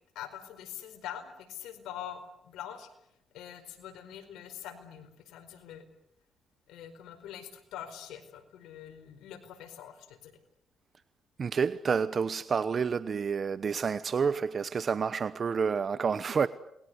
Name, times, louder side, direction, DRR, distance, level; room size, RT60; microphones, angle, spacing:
voice 1, 0.1-2.9 3.3-5.9 6.7-10.3, left 10 dB, 85° left, 4.6 m, -44 dB
voice 2, 11.4-16.5, right 6 dB, 45° right, 1.0 m, -29 dB
28.5 x 21.5 x 8.1 m
cardioid pair, 90°, 0 cm